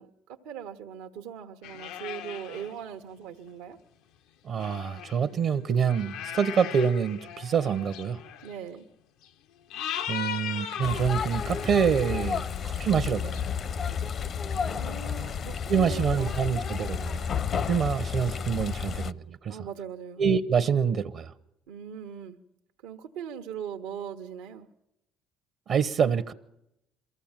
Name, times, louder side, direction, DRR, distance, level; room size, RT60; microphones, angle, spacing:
voice 1, 0.0-3.8 8.4-8.8 14.5-16.6 19.5-20.2 21.7-22.4 22.8-24.7, right 8 dB, 85° right, 1.0 m, -40 dB
sound 1, 1.6-2.8 3.5-3.6 4.5-8.6 9.2-9.3 9.7-12.7 13.3-14.7 15.2-15.3 15.6-15.7 16.1-16.2 16.5-17.6 18.7-18.8, left 9 dB, 80° left, 0.7 m, -39 dB
voice 2, 4.4-8.2 10.1-13.4 15.7-17.2 17.7-19.6 20.2-21.3 25.7-26.3, right 7 dB, 60° right, 0.8 m, -26 dB
sound 2, 10.8-19.1, left 7 dB, 50° left, 0.7 m, -31 dB
23.0 x 15.0 x 8.9 m
supercardioid pair, 85°, 0 cm